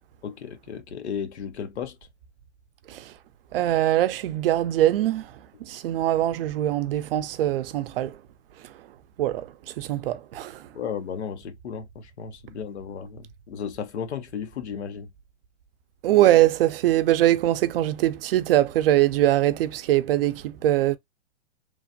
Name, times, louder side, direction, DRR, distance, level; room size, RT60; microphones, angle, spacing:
voice 1, 0.2-2.0 10.7-15.1, left 7 dB, 85° left, 0.7 m, -34 dB
voice 2, 3.5-8.2 8.6-8.7 9.2-10.7 16.0-21.0, right 13 dB, 60° right, 0.5 m, -22 dB
3.2 x 2.1 x 2.5 m
hypercardioid pair, 130°, 33 cm